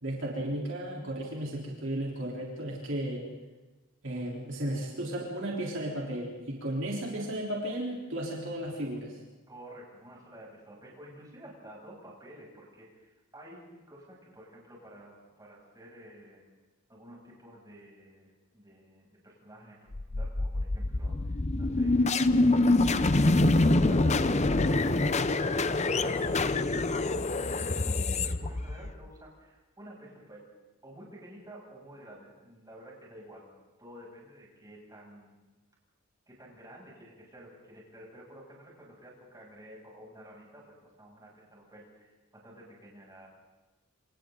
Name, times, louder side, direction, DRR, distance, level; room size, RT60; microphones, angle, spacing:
voice 1, 0.0-3.3 4.0-9.2, right 1 dB, 60° right, -3 dB, 3.9 m, -34 dB
voice 2, 9.5-16.4 16.9-19.8 20.1-23.1 23.6-30.5 30.8-33.5 33.8-35.4 36.3-43.3, equal, 15° right, -4 dB, 7.5 m, -51 dB
sound 1, 19.9-29.1, left 2 dB, 30° left, 0.7 m, -25 dB
28.0 x 27.5 x 4.0 m, 1.2 s
head